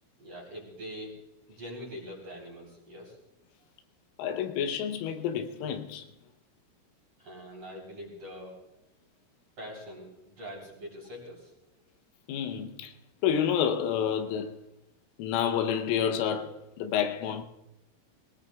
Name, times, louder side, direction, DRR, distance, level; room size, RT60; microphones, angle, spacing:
voice 1, 0.2-1.1 1.5-3.2 7.2-8.6 9.6-11.5, equal, 35° right, 3.8 m, -43 dB
voice 2, 4.2-6.0 12.3-12.9 13.2-14.6 15.2-17.4, left 8 dB, 85° left, 3.3 m, -29 dB
21.0 x 19.0 x 2.3 m
omnidirectional pair, 5.8 m